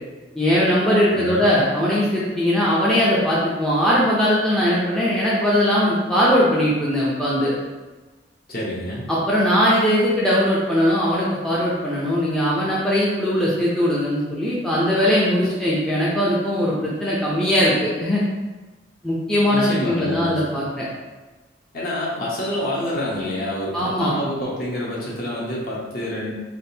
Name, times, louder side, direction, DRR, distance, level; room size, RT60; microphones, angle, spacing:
voice 1, 0.4-7.5 9.1-18.2 19.0-20.9 23.7-24.1, equal, 5° left, -8 dB, 0.5 m, -20 dB
voice 2, 1.1-1.4 8.5-9.1 19.5-20.7 21.7-26.3, left 1 dB, 50° left, -6 dB, 0.9 m, -27 dB
3.4 x 2.5 x 2.7 m, 1.2 s
head